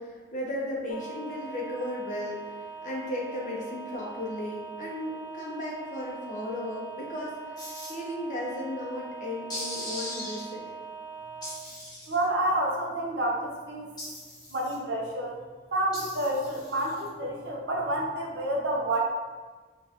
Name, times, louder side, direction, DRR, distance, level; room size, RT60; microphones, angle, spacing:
voice 1, 0.0-2.5 2.8-7.3 7.9-10.6, left 1 dB, 45° left, -3 dB, 0.7 m, -35 dB
sound 1, 0.9-11.6, right 5 dB, 65° left, 0.4 m, -42 dB
sound 2, 7.6-7.9 9.5-10.4 11.4-12.2 14.0-14.8 15.9-17.1, left 1 dB, 20° left, 1.0 m, -39 dB
voice 2, 12.1-13.9 14.5-15.3 15.7-19.0, right 1 dB, 70° right, -2 dB, 0.7 m, -29 dB
4.5 x 2.4 x 2.7 m, 1.4 s
head